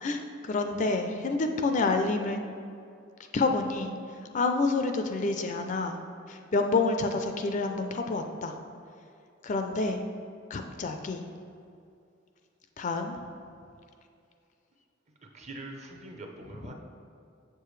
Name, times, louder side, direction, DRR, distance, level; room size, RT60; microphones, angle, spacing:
voice 1, 0.0-2.4 3.3-3.9 4.3-6.0 6.3-8.5 9.4-10.0 10.5-11.2 12.8-13.1, left 3 dB, 40° left, 6 dB, 0.4 m, -28 dB
voice 2, 15.3-16.7, right 2 dB, 35° right, 2 dB, 0.7 m, -43 dB
7.2 x 6.7 x 3.2 m, 2.5 s
head